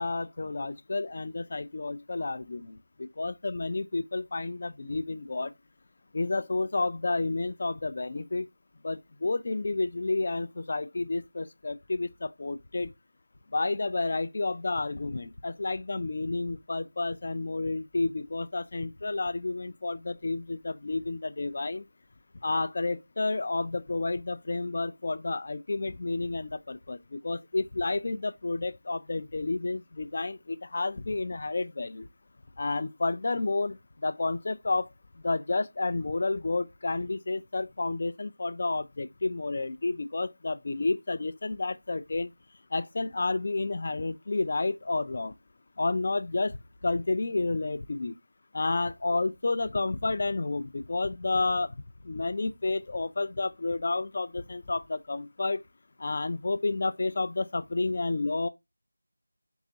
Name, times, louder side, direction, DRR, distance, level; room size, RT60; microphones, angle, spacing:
voice 1, 0.0-5.5 6.1-8.5 8.8-12.9 13.5-21.8 22.4-32.1 32.6-33.8 34.0-34.9 35.2-42.3 42.7-45.3 45.8-46.6 46.8-48.2 48.5-51.7 52.0-55.6 56.0-58.5, left 3 dB, 40° left, 0.4 m, -30 dB
3.9 x 3.5 x 2.7 m
figure-of-eight pair, 170°, 0 cm